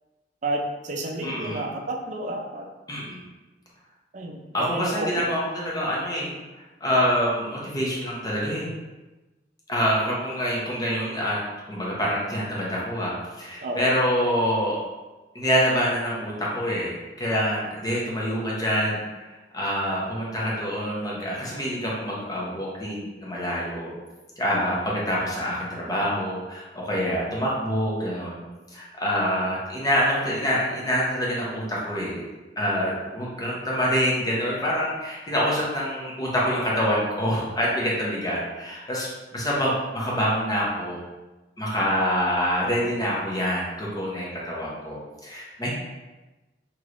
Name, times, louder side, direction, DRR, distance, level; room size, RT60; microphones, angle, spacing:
voice 1, 0.4-2.7 4.1-5.3 13.6-13.8, right 1 dB, 45° right, 2 dB, 0.4 m, -31 dB
voice 2, 1.2-1.6 2.9-3.2 4.5-6.3 6.8-8.7 9.7-11.4 11.7-14.8 15.3-23.9 24.4-28.4 28.7-32.2 32.6-41.0 41.6-45.7, equal, 20° left, -5 dB, 0.7 m, -26 dB
3.1 x 3.0 x 2.5 m, 1.1 s
head